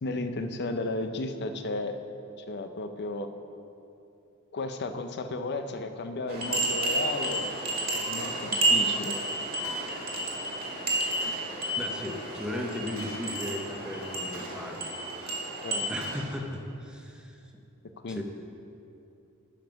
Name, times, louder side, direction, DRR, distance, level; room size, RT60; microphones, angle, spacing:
voice 1, 0.0-2.0 2.4-3.3 4.5-7.5 7.9-9.2 15.6-15.9 18.0-18.2, left 2 dB, 50° left, 8 dB, 0.6 m, -34 dB
sound 1, 6.3-16.2, right 2 dB, 45° right, 1.9 m, -31 dB
Gunshot gunfire, 8.2-8.5 9.6-10.0 11.2-11.6 13.0-13.4 14.3-14.8 16.0-16.4, right 2 dB, 85° right, 1.8 m, -45 dB
voice 2, 11.8-15.6 15.9-17.4 18.1-18.2, left 1 dB, 5° right, 2 dB, 0.8 m, -37 dB
10.0 x 5.6 x 5.9 m, 2.7 s
head